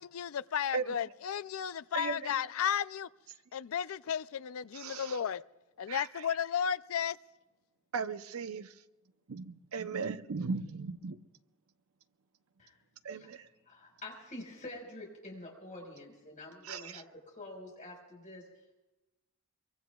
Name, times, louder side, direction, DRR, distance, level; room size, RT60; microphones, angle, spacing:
voice 1, 0.1-3.1 3.5-5.4 5.8-7.2, left 8 dB, 75° left, 0.4 m, -33 dB
voice 2, 0.7-1.1 1.9-2.4 4.7-5.2 5.9-6.3 7.9-8.8 9.3-11.2 13.0-13.5 16.6-17.0, right 5 dB, 85° right, 0.7 m, -38 dB
voice 3, 13.6-18.4, left 2 dB, 35° left, 4.9 m, -47 dB
23.5 x 23.5 x 2.3 m
head